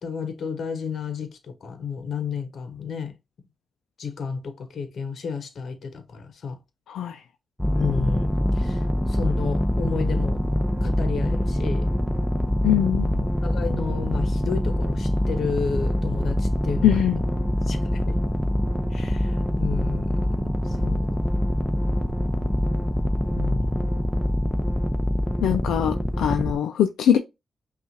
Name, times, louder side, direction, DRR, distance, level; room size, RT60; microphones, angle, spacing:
voice 1, 0.0-3.1 4.0-6.6 7.8-10.4 10.8-11.9 13.1-17.0 17.7-18.2 18.9-20.3 20.6-21.1 23.3-23.9, left 6 dB, 70° left, 0.8 m, -32 dB
voice 2, 6.9-7.2 12.6-13.2 16.8-17.2 25.4-27.2, left 10 dB, 90° left, 0.3 m, -22 dB
sound 1, 7.6-26.6, equal, 5° left, 0.7 m, -24 dB
5.4 x 2.4 x 2.8 m
cardioid pair, 60°, 0 cm